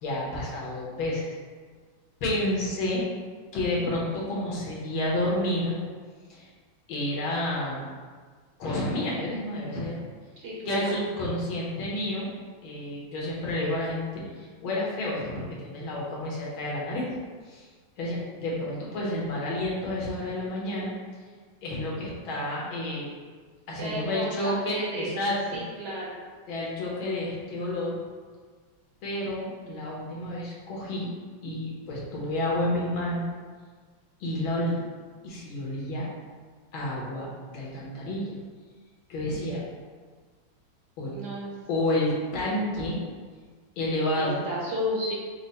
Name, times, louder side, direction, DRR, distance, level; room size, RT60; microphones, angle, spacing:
voice 1, 0.0-1.3 2.2-3.0 3.5-5.8 6.3-6.5 6.9-7.9 8.6-10.0 10.7-12.3 12.6-17.1 17.5-17.7 18.0-20.9 21.6-23.1 23.7-25.6 26.5-28.0 29.0-31.1 31.4-33.3 34.2-34.8 35.2-36.1 36.7-38.4 39.1-39.6 41.0-41.1 41.7-43.0 43.8-44.4, left 1 dB, 80° left, -4 dB, 1.9 m, -30 dB
voice 2, 10.4-11.0 23.8-25.1 25.5-26.2 41.1-41.5 44.2-45.1, equal, 60° right, -4 dB, 1.4 m, -33 dB
6.1 x 2.1 x 4.0 m, 1.5 s
omnidirectional pair, 2.2 m